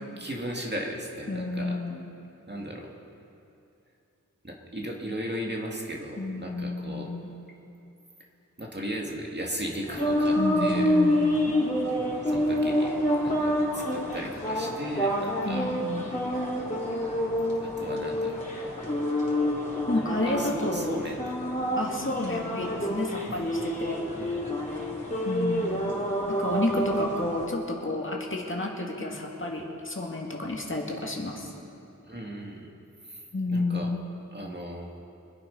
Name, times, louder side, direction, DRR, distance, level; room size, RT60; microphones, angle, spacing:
voice 1, 0.2-1.8 2.5-2.9 4.4-7.1 8.6-11.0 11.8-11.9 12.2-12.9 13.2-15.7 17.6-18.8 19.8-21.3 21.6-21.8 23.3-23.4 24.1-24.4 32.1-32.7 33.1-33.9 34.3-34.9, equal, 30° right, -1 dB, 2.1 m, -37 dB
voice 2, 1.3-2.1 6.2-7.3 10.4-11.6 15.4-16.1 19.9-21.0 21.8-24.0 25.2-26.0 26.3-31.5 33.3-34.0, left 2 dB, 40° left, -1 dB, 2.1 m, -31 dB
sound 1, 9.9-27.5, equal, 25° left, 3.5 m, -28 dB
25.0 x 8.6 x 5.4 m, 2.8 s
wide cardioid pair, 65°, 33 cm